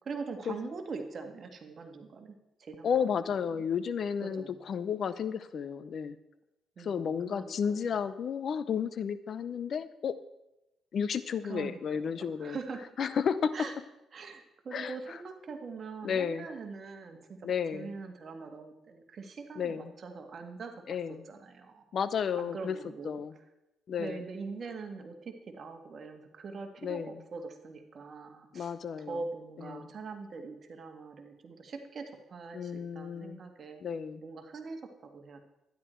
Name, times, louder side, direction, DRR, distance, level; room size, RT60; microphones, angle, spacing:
voice 1, 0.0-2.9 3.5-3.6 4.2-4.6 6.8-7.9 11.4-12.9 13.5-13.7 14.1-21.0 21.2-21.8 22.4-23.2 24.0-33.9 34.1-35.4, right 4 dB, 50° right, 4 dB, 1.8 m, -43 dB
voice 2, 2.8-6.2 6.8-10.1 10.9-12.6 13.0-13.5 14.7-15.2 16.0-16.5 17.4-17.9 19.6-19.9 20.9-21.2 21.9-22.8 23.0-23.3 23.9-24.2 26.8-27.2 28.5-29.2 29.6-29.9 32.5-33.4 33.8-34.2, left 7 dB, 55° left, 14 dB, 0.6 m, -32 dB
12.0 x 10.5 x 4.5 m, 0.91 s
cardioid pair, 90°, 0 cm